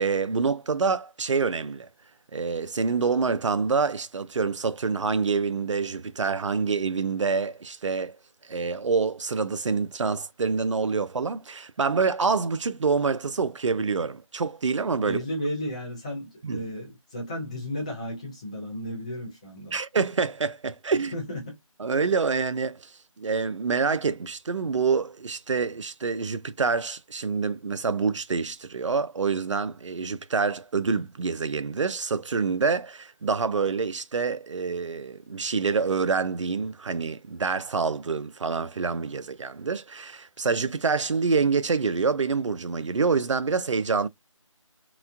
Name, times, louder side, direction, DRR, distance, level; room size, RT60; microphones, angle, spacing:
voice 1, 0.0-1.9 2.3-8.2 8.4-15.2 16.4-16.6 19.7-21.1 21.8-44.1, right 5 dB, 65° right, 0.4 m, -26 dB
voice 2, 15.0-19.8 21.1-21.6, equal, 10° left, 0.6 m, -33 dB
3.0 x 2.1 x 2.4 m
figure-of-eight pair, 160°, 17 cm